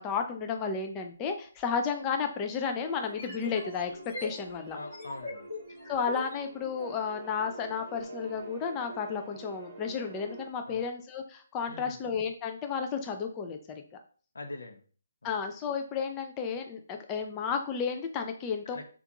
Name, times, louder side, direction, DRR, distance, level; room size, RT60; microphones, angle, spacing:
voice 1, 0.0-3.9 4.2-4.8 5.9-13.6 15.2-18.8, left 6 dB, 15° left, 5 dB, 0.3 m, -32 dB
sound 1, 1.6-1.7 3.0-7.0, left 2 dB, 35° left, 1.7 m, -42 dB
sound 2, 2.8-10.5, right 2 dB, 25° right, 0.9 m, -47 dB
voice 2, 4.7-5.5 10.7-10.9 11.7-12.0 14.3-14.8 15.2-15.3 18.7-18.8, left 2 dB, 85° left, 5 dB, 0.7 m, -43 dB
3.5 x 2.4 x 2.9 m, 0.41 s
hypercardioid pair, 165°, 0 cm